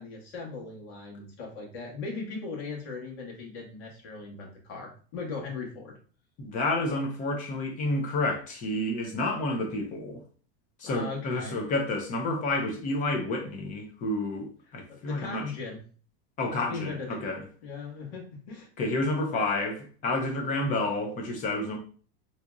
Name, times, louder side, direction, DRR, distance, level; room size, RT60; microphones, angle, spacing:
voice 1, 0.0-6.0 10.8-11.6 14.9-15.8 16.7-17.2 17.6-18.7, left 4 dB, 70° left, 1.7 m, -38 dB
voice 2, 6.4-10.2 10.8-15.5 16.4-17.4 18.8-21.8, left 2 dB, 25° left, 0.6 m, -30 dB
4.0 x 2.9 x 2.4 m
supercardioid pair, 170°, 33 cm